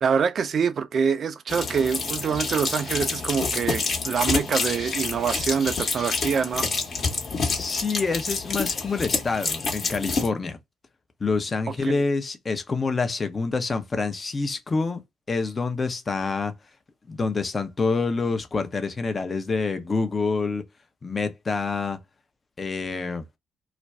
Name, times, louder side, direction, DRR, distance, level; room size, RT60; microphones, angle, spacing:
voice 1, 0.0-6.7 11.8-12.0, right 6 dB, 50° right, 0.4 m, -25 dB
sound 1, 1.5-10.3, left 4 dB, 50° left, 1.0 m, -28 dB
voice 2, 7.5-10.6 11.2-15.0 15.3-16.5 17.1-20.6 21.0-22.0 22.6-23.2, left 4 dB, 35° left, 0.7 m, -27 dB
2.5 x 2.3 x 3.2 m
figure-of-eight pair, 45°, 0 cm